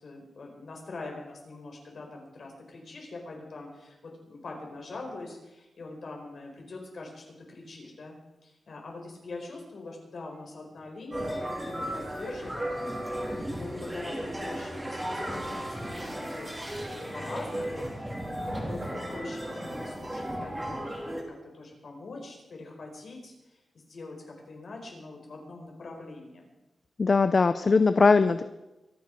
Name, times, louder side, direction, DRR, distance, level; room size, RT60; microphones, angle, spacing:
voice 1, 0.0-8.1 8.4-12.8 13.3-14.8 15.1-17.9 18.3-26.5, left 3 dB, 55° left, 1 dB, 4.6 m, -43 dB
sound 1, 11.1-21.2, equal, 10° right, 3.2 m, -35 dB
voice 2, 27.0-28.4, left 4 dB, 40° left, 11 dB, 0.5 m, -20 dB
24.5 x 9.3 x 5.3 m, 1.0 s
wide cardioid pair, 150°, 0 cm